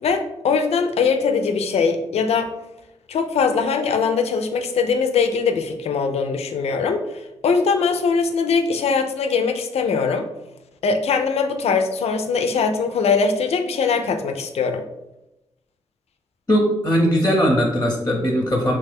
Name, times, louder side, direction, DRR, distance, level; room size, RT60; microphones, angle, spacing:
voice 1, 0.0-2.5 3.1-10.3 10.8-14.8, left 5 dB, 70° left, 7 dB, 0.4 m, -21 dB
voice 2, 16.5-18.8, equal, 20° left, 0 dB, 0.7 m, -19 dB
3.0 x 2.2 x 3.3 m, 0.91 s
supercardioid pair, 45°, 11 cm